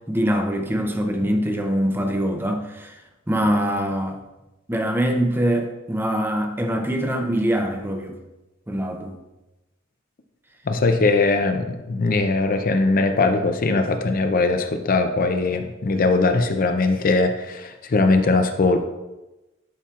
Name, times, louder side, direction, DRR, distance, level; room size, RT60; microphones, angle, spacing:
voice 1, 0.1-2.9 3.3-4.2 4.7-8.2 8.7-9.2, equal, 10° right, 4 dB, 0.6 m, -23 dB
voice 2, 10.7-18.8, left 3 dB, 45° left, 7 dB, 0.5 m, -20 dB
11.0 x 4.3 x 2.4 m, 1.0 s
head